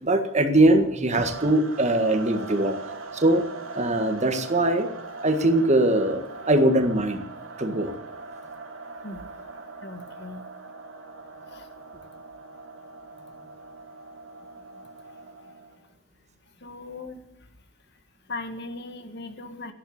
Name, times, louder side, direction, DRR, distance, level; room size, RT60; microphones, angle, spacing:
voice 1, 0.0-2.8 3.1-3.4 3.7-4.9 5.2-7.2 7.6-7.9, right 1 dB, 35° right, 7 dB, 1.7 m, -21 dB
sound 1, 1.1-15.9, right 3 dB, 75° right, 2.8 m, -41 dB
voice 2, 9.8-10.4 11.5-11.7 16.6-17.2 18.3-19.7, left 2 dB, 55° left, 7 dB, 1.9 m, -38 dB
14.0 x 11.0 x 8.1 m, 0.80 s
head